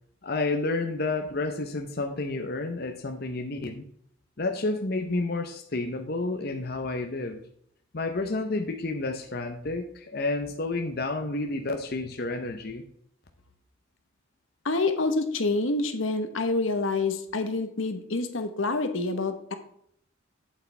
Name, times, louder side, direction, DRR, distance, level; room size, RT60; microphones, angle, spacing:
voice 1, 0.2-3.8 4.4-7.4 7.9-12.8, left 2 dB, 50° left, 5 dB, 0.8 m, -30 dB
voice 2, 14.6-19.5, left 3 dB, 80° left, 8 dB, 1.1 m, -27 dB
8.5 x 7.8 x 3.4 m, 0.65 s
head